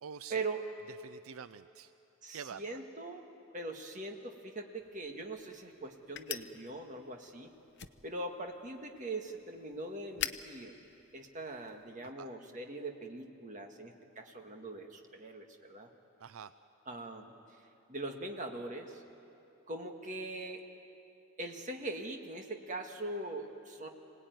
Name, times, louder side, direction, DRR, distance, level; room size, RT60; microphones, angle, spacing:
voice 1, 0.0-0.4 1.0-1.9 2.3-2.8 12.0-12.3 16.2-16.5, right 7 dB, 80° right, 13 dB, 0.5 m, -47 dB
voice 2, 2.2-3.3 3.5-7.5 8.0-10.7 11.1-15.9 16.9-17.3 17.9-19.0 19.7-20.6 21.4-23.9, right 2 dB, 35° right, 3 dB, 1.7 m, -41 dB
sound 1, 4.8-11.9, left 11 dB, 55° left, 0.7 m, -46 dB
25.5 x 18.0 x 9.4 m, 2.8 s
head